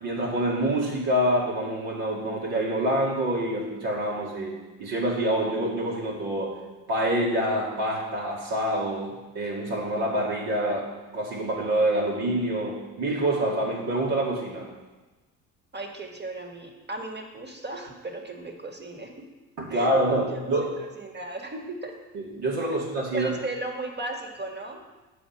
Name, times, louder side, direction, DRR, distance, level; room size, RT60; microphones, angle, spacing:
voice 1, 0.0-6.6 6.9-14.7 19.6-20.7 22.1-23.3, right 1 dB, 75° right, -5 dB, 2.3 m, -26 dB
voice 2, 15.7-19.3 19.7-20.0 20.3-20.4 21.0-21.9 23.1-24.8, right 2 dB, 25° right, 2 dB, 1.7 m, -36 dB
8.2 x 5.8 x 5.3 m, 1.2 s
supercardioid pair, 75°, 40 cm